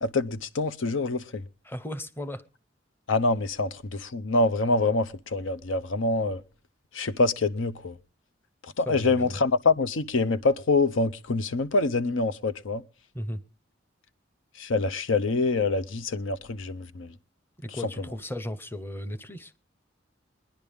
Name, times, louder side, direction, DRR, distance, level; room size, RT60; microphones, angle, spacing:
voice 1, 0.0-1.4 3.1-6.4 6.9-8.0 8.8-12.8 14.6-17.1, left 3 dB, 90° left, 0.7 m, -25 dB
voice 2, 1.6-2.4 8.9-9.4 13.1-13.4 17.6-19.5, left 1 dB, 10° left, 0.8 m, -35 dB
23.0 x 10.5 x 3.5 m
head